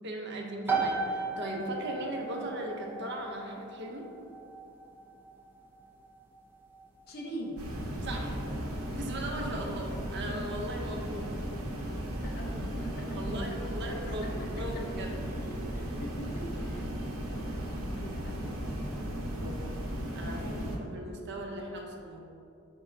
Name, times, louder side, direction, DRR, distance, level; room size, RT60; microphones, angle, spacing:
voice 1, 0.0-4.1 8.0-8.4 8.9-11.4 13.1-15.1 19.3-19.7 20.1-20.4 20.8-22.2, right 1 dB, 50° right, 1 dB, 0.7 m, -38 dB
sound 1, 0.7-15.2, right 4 dB, 10° right, 0.6 m, -39 dB
voice 2, 7.1-7.6 12.2-14.9 15.4-16.9 18.0-18.7 20.3-21.0, right 1 dB, 45° left, 0 dB, 0.7 m, -43 dB
sound 2, 7.6-20.8, equal, 70° right, 0.9 m, -36 dB
5.4 x 3.7 x 5.0 m, 2.5 s
head